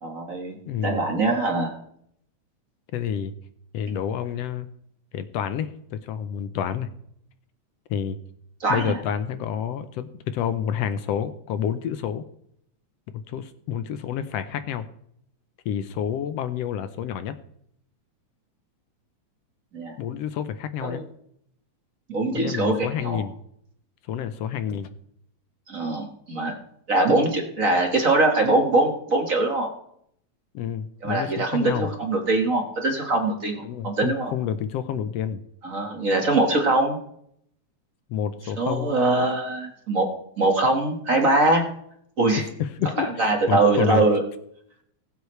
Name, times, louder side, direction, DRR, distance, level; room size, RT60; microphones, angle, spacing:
voice 1, 0.0-1.7 8.6-9.0 19.7-19.9 20.8-21.0 22.1-23.2 25.7-26.5 26.9-29.7 31.0-34.3 35.6-37.0 38.6-40.1 40.4-41.6 42.2-42.4 43.0-44.2, right 2 dB, 35° right, 3 dB, 1.4 m, -22 dB
voice 2, 0.7-1.0 2.9-3.3 3.7-4.7 5.1-6.9 7.9-8.2 8.7-12.2 13.1-14.8 15.6-17.3 20.0-21.0 22.3-23.4 24.1-24.9 30.5-31.9 33.6-35.4 38.1-38.9 42.4-44.0, left 9 dB, 70° left, 11 dB, 1.6 m, -29 dB
20.5 x 8.2 x 3.2 m, 0.69 s
omnidirectional pair, 3.3 m